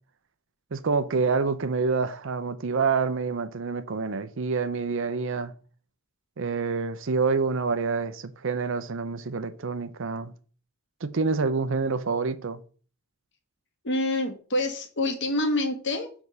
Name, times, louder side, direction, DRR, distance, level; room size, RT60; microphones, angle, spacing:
voice 1, 0.7-5.5 6.4-10.3 11.0-12.6, right 4 dB, 65° right, 0.6 m, -27 dB
voice 2, 13.8-16.1, left 1 dB, 60° left, 1.5 m, -27 dB
6.3 x 3.6 x 5.4 m
head